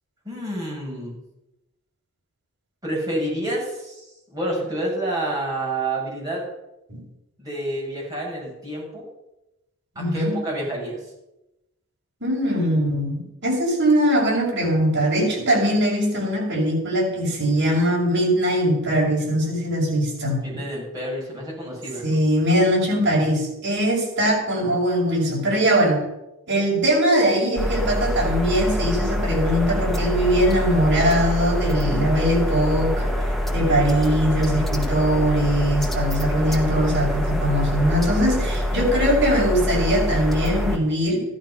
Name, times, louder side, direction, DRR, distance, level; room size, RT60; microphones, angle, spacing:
voice 1, 0.2-1.2 2.8-6.5 7.4-9.1 9.9-11.0 20.4-22.1, right 1 dB, 15° right, -5 dB, 6.3 m, -29 dB
voice 2, 9.9-10.4 12.2-20.4 22.0-26.0 26.5-33.1 33.5-41.2, equal, 55° right, -3 dB, 6.4 m, -21 dB
sound 1, 27.6-40.8, equal, ahead, 1.4 m, -24 dB
14.0 x 11.5 x 5.7 m, 0.93 s
head